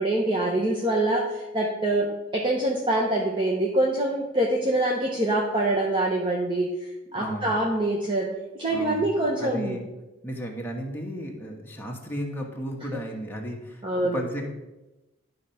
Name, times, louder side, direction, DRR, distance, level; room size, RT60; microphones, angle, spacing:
voice 1, 0.0-6.7 7.1-8.3 8.6-9.8 13.8-14.2, right 1 dB, 25° right, -2 dB, 1.0 m, -25 dB
voice 2, 7.1-7.5 8.7-9.8 10.2-14.5, equal, 10° left, -1 dB, 1.3 m, -34 dB
11.0 x 4.1 x 5.7 m, 1.0 s
head